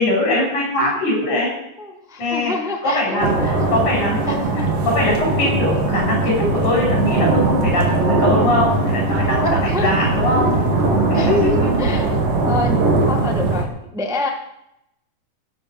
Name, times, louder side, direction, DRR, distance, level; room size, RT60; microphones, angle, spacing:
voice 1, 0.0-1.5 2.2-2.5 2.8-10.6 11.1-11.7, left 1 dB, 80° left, -2 dB, 8.5 m, -21 dB
voice 2, 1.5-3.8 4.3-4.7 9.7-9.9 11.1-12.1 12.5-12.8 13.1-14.3, left 2 dB, ahead, 2 dB, 1.1 m, -28 dB
sound 1, 3.2-13.6, right 3 dB, 55° right, 3.2 m, -19 dB
16.0 x 12.0 x 5.4 m, 0.81 s
omnidirectional pair, 3.5 m